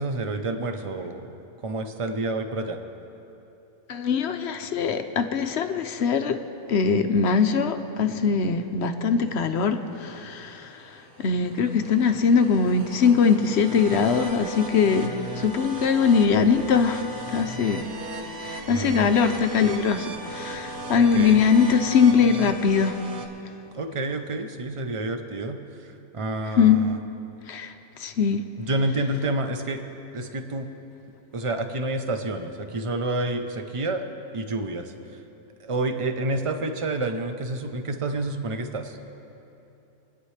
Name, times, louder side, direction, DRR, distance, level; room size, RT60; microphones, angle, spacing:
voice 1, 0.0-1.3 1.6-2.8 18.7-19.1 21.0-21.4 23.7-27.0 28.6-29.8 30.1-30.7 31.3-34.0 34.3-34.9 35.6-39.0, right 2 dB, 35° right, 6 dB, 0.5 m, -29 dB
voice 2, 3.9-6.4 6.7-10.8 11.2-17.9 18.4-23.0 26.6-26.8 27.5-27.7 28.0-28.4, left 6 dB, 60° left, 8 dB, 0.7 m, -21 dB
sound 1, 10.2-23.3, right 2 dB, 65° right, 1.5 m, -37 dB
26.5 x 9.8 x 3.3 m, 2.9 s
omnidirectional pair, 1.7 m